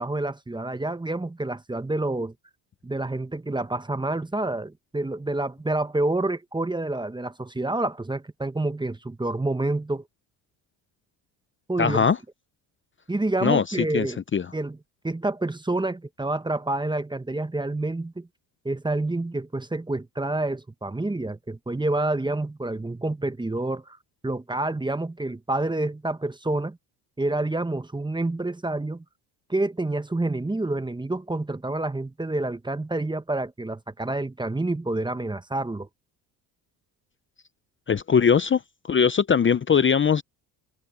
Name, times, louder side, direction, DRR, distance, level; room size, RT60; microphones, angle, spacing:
voice 1, 0.0-2.3 2.8-10.0 11.7-12.0 13.1-14.2 14.5-14.8 15.0-18.3 18.6-24.0 24.2-26.8 27.2-29.0 29.5-35.9, right 2 dB, 10° right, 1.1 m, -28 dB
voice 2, 11.8-12.2 13.4-14.5 37.9-40.2, left 6 dB, 25° left, 0.8 m, -21 dB
supercardioid pair, 80°, 44 cm